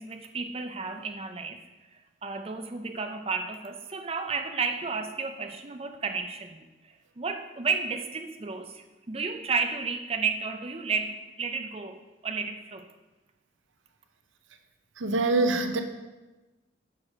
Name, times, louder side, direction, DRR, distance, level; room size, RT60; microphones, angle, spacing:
voice 1, 0.0-1.7 2.2-12.9, right 4 dB, 30° right, 6 dB, 0.5 m, -32 dB
voice 2, 15.0-15.8, right 3 dB, 85° right, 7 dB, 0.7 m, -24 dB
5.7 x 4.8 x 6.4 m, 1.1 s
head